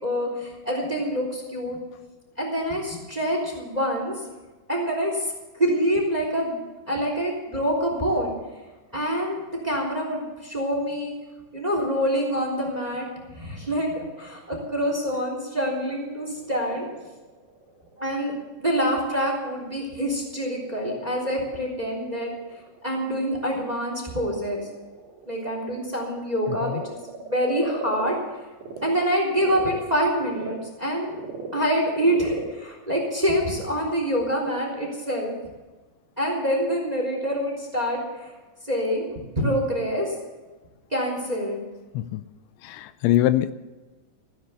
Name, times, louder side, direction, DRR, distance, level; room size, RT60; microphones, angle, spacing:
voice 1, 0.0-1.8 2.4-4.2 4.7-5.3 5.6-6.6 6.9-8.3 8.9-11.1 11.5-16.9 18.0-18.3 18.6-22.3 22.8-24.6 25.3-28.2 28.8-31.1 31.5-35.3 36.2-38.3 38.7-39.0 39.4-40.1 40.9-41.6, equal, 10° right, 1 dB, 2.8 m, -26 dB
Frog, 16.2-28.9 29.3-33.9, right 4 dB, 55° right, 3.5 m, -40 dB
voice 2, 26.5-26.8 41.9-42.2 42.6-43.5, left 13 dB, 85° left, 13 dB, 2.8 m, -23 dB
16.5 x 10.5 x 6.9 m, 1.2 s
omnidirectional pair, 5.3 m